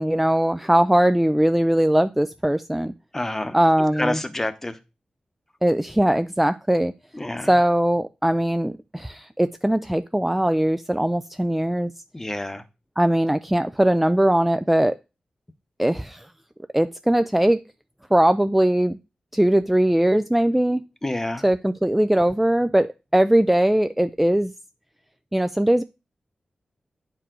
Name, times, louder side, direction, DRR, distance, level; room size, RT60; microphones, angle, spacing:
voice 1, 0.0-2.9 3.5-4.2 5.6-6.9 7.4-11.9 13.0-15.0 15.8-16.3 16.7-17.6 18.1-19.0 19.3-20.8 21.4-24.5 25.3-25.8, right 1 dB, 5° right, 10 dB, 0.4 m, -20 dB
voice 2, 3.1-3.6 4.0-4.8 7.1-7.5 12.1-12.6 21.0-21.4, left 1 dB, 15° left, 11 dB, 0.9 m, -28 dB
9.4 x 4.7 x 3.8 m, 0.28 s
wide cardioid pair, 90°, 2 cm